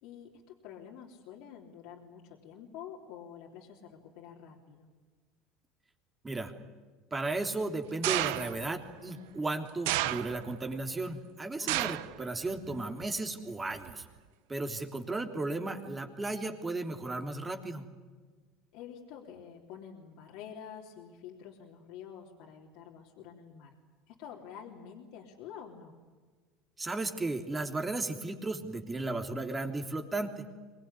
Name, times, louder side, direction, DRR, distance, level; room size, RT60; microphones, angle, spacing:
voice 1, 0.0-4.9 11.6-11.9 18.7-23.7 24.1-26.0, left 8 dB, 70° left, -1 dB, 3.4 m, -48 dB
voice 2, 7.1-14.0 14.5-17.8 26.8-30.4, right 2 dB, 15° right, 5 dB, 3.3 m, -35 dB
sound 1, 8.0-8.7 9.9-10.6 11.7-12.2 12.6-13.0 13.9-14.0, right 15 dB, 75° right, 1.0 m, -31 dB
24.5 x 19.5 x 9.9 m, 1.4 s
supercardioid pair, 105°, 0 cm